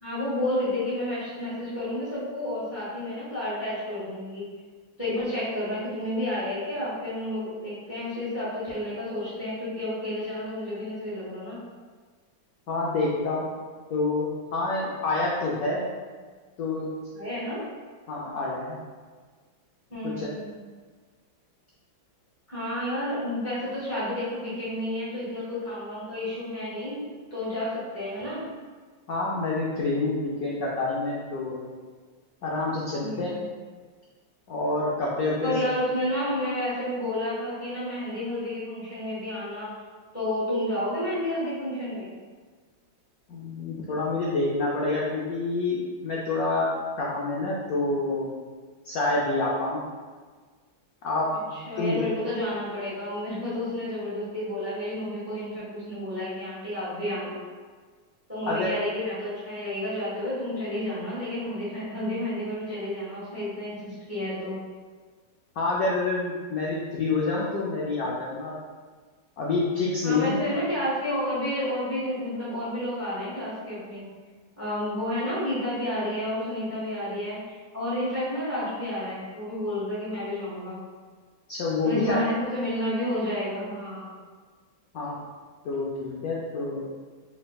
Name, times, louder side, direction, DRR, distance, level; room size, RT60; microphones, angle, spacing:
voice 1, 0.0-4.4 5.0-11.6 17.1-17.6 19.9-20.5 22.5-28.5 33.0-33.4 35.4-39.7 40.1-42.1 51.5-57.4 58.3-64.6 70.0-74.1 74.6-80.8 81.8-84.2, left 1 dB, 10° right, -9 dB, 0.9 m, -31 dB
voice 2, 12.7-13.5 13.9-15.8 16.6-16.9 18.1-18.8 20.0-20.3 29.1-31.6 32.4-33.3 34.5-35.5 43.3-45.8 46.0-46.7 47.0-48.3 48.8-49.8 51.0-52.0 58.5-58.7 65.6-68.5 69.4-70.4 81.5-82.2 84.9-85.1 85.6-86.8, left 3 dB, 70° left, -4 dB, 0.8 m, -27 dB
4.4 x 3.5 x 2.3 m, 1.5 s
omnidirectional pair, 2.1 m